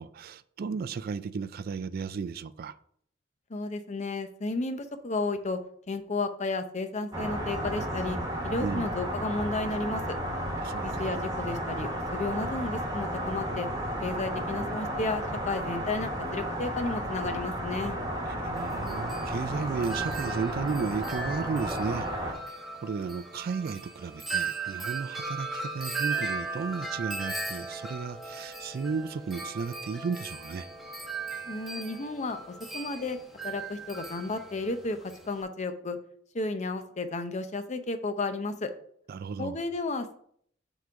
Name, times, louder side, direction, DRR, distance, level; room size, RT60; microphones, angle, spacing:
voice 1, 0.0-2.7 8.6-8.9 10.6-11.2 18.4-30.7 39.1-39.6, right 5 dB, 50° right, 0.3 m, -34 dB
voice 2, 3.5-5.6 5.9-8.2 8.4-10.2 10.8-13.7 14.0-18.0 31.5-32.4 32.7-33.2 33.4-35.0 35.3-36.0 36.3-38.7 39.4-40.2, left 3 dB, 35° left, 0.6 m, -32 dB
sound 1, 7.1-22.3, equal, 20° right, 1.3 m, -33 dB
Wind chime, 18.6-35.4, right 4 dB, ahead, 0.9 m, -37 dB
6.1 x 3.8 x 5.7 m
head